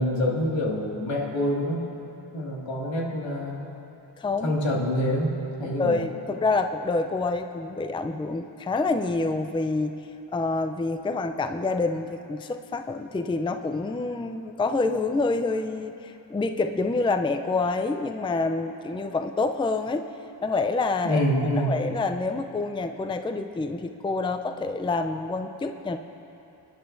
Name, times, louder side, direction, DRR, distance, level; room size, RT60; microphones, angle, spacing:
voice 1, 0.0-1.8 2.3-3.6 4.4-5.3 5.6-6.0 21.0-21.7, equal, 80° left, -2 dB, 2.2 m, -26 dB
voice 2, 4.2-4.5 5.6-10.0 10.3-20.0 20.4-26.0, left 3 dB, 10° left, 7 dB, 0.4 m, -27 dB
26.0 x 10.5 x 2.6 m, 2.9 s
cardioid pair, 70°, 44 cm